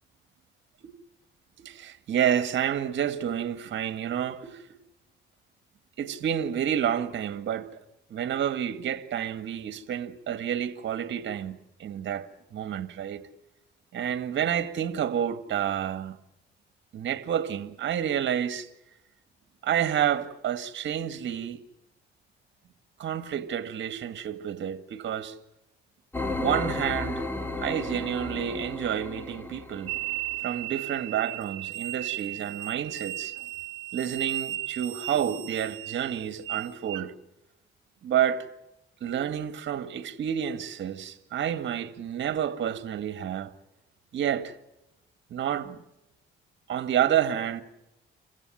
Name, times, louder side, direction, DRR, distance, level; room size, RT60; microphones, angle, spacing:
voice 1, 1.6-4.8 6.0-7.8 8.1-13.2 13.9-16.2 16.9-18.7 19.6-21.6 23.0-25.4 26.3-27.2 27.6-29.9 30.4-33.5 33.9-37.1 38.0-38.5 39.0-43.5 44.1-44.6 45.3-45.8 46.7-47.6, right 9 dB, 65° right, 1.9 m, -29 dB
sound 1, 26.1-30.4, left 2 dB, 10° left, 2.9 m, -34 dB
sound 2, 29.9-37.1, right 16 dB, 85° right, 0.8 m, -35 dB
28.0 x 16.0 x 8.7 m
cardioid pair, 90°, 20 cm